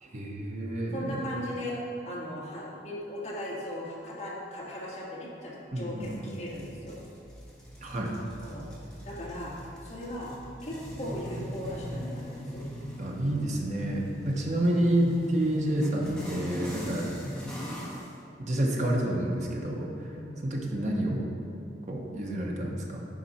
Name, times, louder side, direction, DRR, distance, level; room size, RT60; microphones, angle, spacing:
voice 1, 0.0-1.3 5.7-6.3 7.8-8.2 13.0-17.1 18.4-20.1 20.4-21.3 21.9-23.1, right 1 dB, 40° right, -1 dB, 1.0 m, -29 dB
voice 2, 0.9-1.8 2.0-7.0 8.4-8.7 9.0-9.5 9.8-10.3 10.6-12.7 20.1-20.4, left 1 dB, 40° left, -6 dB, 1.7 m, -38 dB
sound 1, 6.0-18.1, equal, 5° left, 1.2 m, -41 dB
10.5 x 4.3 x 4.3 m, 2.7 s
head